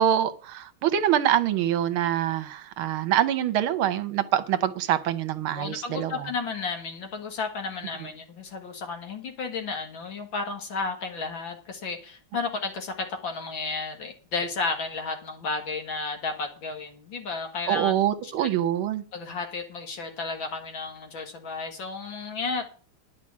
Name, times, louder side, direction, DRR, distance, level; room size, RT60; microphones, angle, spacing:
voice 1, 0.0-6.3 17.7-19.0, right 11 dB, 75° right, 1.7 m, -25 dB
voice 2, 5.5-17.9 18.2-18.5 19.1-22.7, left 4 dB, 65° left, 2.5 m, -33 dB
11.5 x 5.0 x 8.5 m
omnidirectional pair, 2.4 m